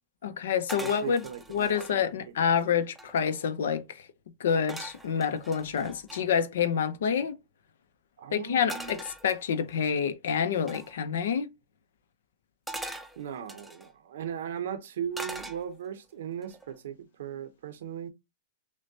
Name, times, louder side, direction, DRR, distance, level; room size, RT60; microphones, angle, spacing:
voice 1, 0.2-1.2 1.5-4.0 4.4-7.4 8.3-11.5, left 7 dB, 85° left, 0.6 m, -28 dB
sound 1, 0.7-2.0 2.6-2.7 2.9-3.5 4.7-6.2 8.7-9.8 10.7-10.9 12.7-13.9 15.1-16.0 16.4-16.8, right 1 dB, 5° right, 0.5 m, -41 dB
voice 2, 0.8-2.5 8.2-8.9 13.2-18.1, right 8 dB, 80° right, 0.6 m, -38 dB
6.1 x 2.2 x 2.7 m
supercardioid pair, 155°, 0 cm